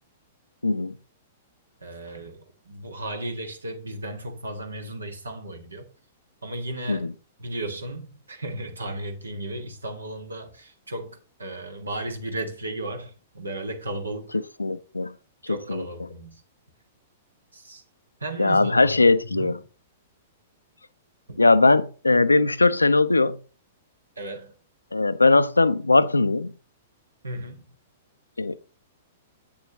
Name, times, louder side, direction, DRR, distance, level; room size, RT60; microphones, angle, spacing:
voice 1, 0.6-0.9 6.9-7.1 14.6-15.1 15.5-15.8 18.4-19.6 21.4-23.4 24.9-26.5 28.4-28.6, left 3 dB, 85° left, 0.5 m, -20 dB
voice 2, 1.8-5.8 6.4-7.1 7.4-14.4 15.4-16.4 17.5-17.8 18.2-19.6 21.3-21.4 24.2-24.5 27.2-27.6, right 1 dB, 80° right, 1.5 m, -35 dB
7.9 x 7.2 x 2.9 m
figure-of-eight pair, 105°, 0 cm